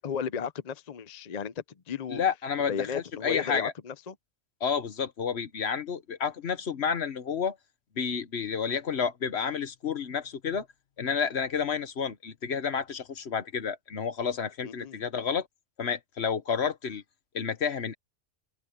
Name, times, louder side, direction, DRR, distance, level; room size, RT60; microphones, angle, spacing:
voice 1, 0.0-2.2 2.7-4.1 14.6-15.0, left 7 dB, 40° left, 0.6 m, -34 dB
voice 2, 2.1-3.7 4.6-7.6 8.0-10.7 11.0-15.5 15.8-17.0 17.3-17.9, left 6 dB, 60° left, 1.3 m, -30 dB
omnidirectional pair, 1.3 m